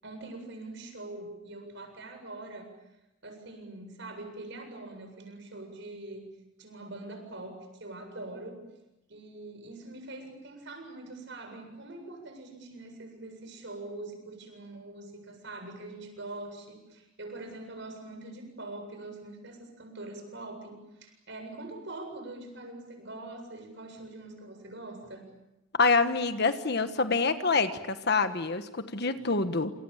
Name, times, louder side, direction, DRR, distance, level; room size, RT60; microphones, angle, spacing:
voice 1, 0.0-2.7 3.2-6.2 6.6-8.6 9.1-25.3, right 2 dB, 60° right, 6 dB, 7.8 m, -43 dB
voice 2, 25.8-29.7, left 4 dB, 50° left, 9 dB, 1.4 m, -26 dB
29.0 x 27.5 x 7.4 m, 0.94 s
head